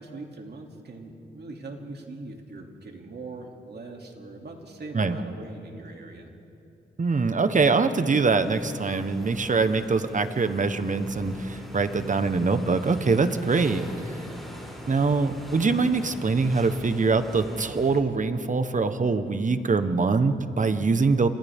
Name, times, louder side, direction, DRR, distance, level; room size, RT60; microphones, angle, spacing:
voice 1, 0.0-6.3, right 2 dB, 55° right, 1 dB, 2.9 m, -41 dB
voice 2, 7.0-14.2 14.9-21.3, right 4 dB, 40° right, 9 dB, 1.3 m, -23 dB
sound 1, 8.2-18.0, equal, ahead, 7.0 m, -41 dB
30.0 x 26.0 x 3.7 m, 2.6 s
cardioid pair, 70°, 20 cm